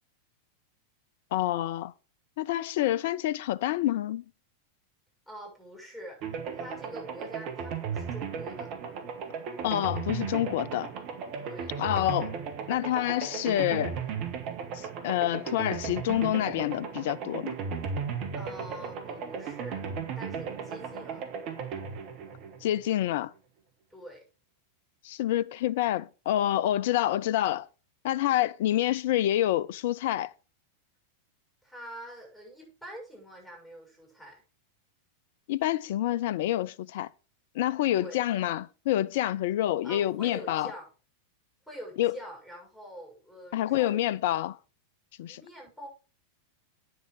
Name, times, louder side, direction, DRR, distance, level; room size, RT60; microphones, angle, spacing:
voice 1, 1.3-1.9 2.4-4.2 9.6-10.9 11.8-12.4 12.7-14.0 14.7-17.6 22.6-23.3 25.0-27.7 28.0-30.3 35.5-37.1 37.5-40.7 42.0-42.2 43.5-44.6 45.2-45.4, left 13 dB, 55° left, 0.4 m, -27 dB
voice 2, 5.3-6.2 6.5-8.7 11.4-11.7 18.3-19.9 20.2-21.2 23.9-24.2 31.6-34.4 37.9-38.2 39.8-40.9 41.7-44.1 45.3-45.9, equal, ahead, 6.3 m, -45 dB
sound 1, 6.2-23.1, right 6 dB, 40° right, 1.7 m, -36 dB
9.5 x 6.8 x 4.9 m
figure-of-eight pair, 90°, 0 cm